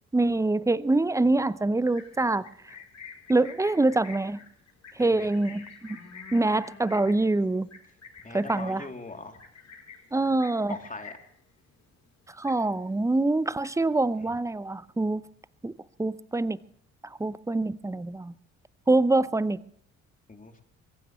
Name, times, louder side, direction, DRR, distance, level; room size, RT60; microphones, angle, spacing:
voice 1, 0.1-2.5 3.3-4.4 5.0-5.7 6.3-7.7 8.3-8.8 10.1-10.8 12.4-15.2 15.6-15.7 16.0-16.6 17.2-18.3 18.9-19.6, right 2 dB, 10° right, 0.7 m, -25 dB
Livestock farm animals working animals, 1.8-11.4 11.7-12.0 12.3-13.0 13.3-14.0, left 5 dB, 45° left, 4.6 m, -48 dB
voice 2, 5.0-5.3 8.2-9.4 10.7-11.2 20.3-20.6, left 3 dB, 20° left, 3.0 m, -41 dB
23.5 x 16.0 x 3.2 m
hypercardioid pair, 45°, 39 cm